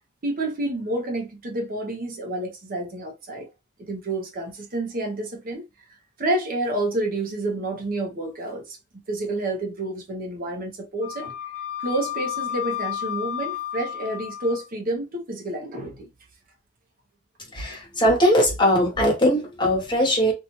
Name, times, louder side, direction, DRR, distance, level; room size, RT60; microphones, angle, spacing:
voice 1, 0.2-3.5 3.9-5.6 6.2-8.8 9.1-11.3 11.8-16.1, right 2 dB, 45° right, 0.7 m, -29 dB
Wind instrument woodwind instrument, 11.0-14.7, left 11 dB, 85° left, 0.6 m, -32 dB
voice 2, 17.5-20.3, equal, 25° left, 1.1 m, -20 dB
2.7 x 2.3 x 2.9 m
head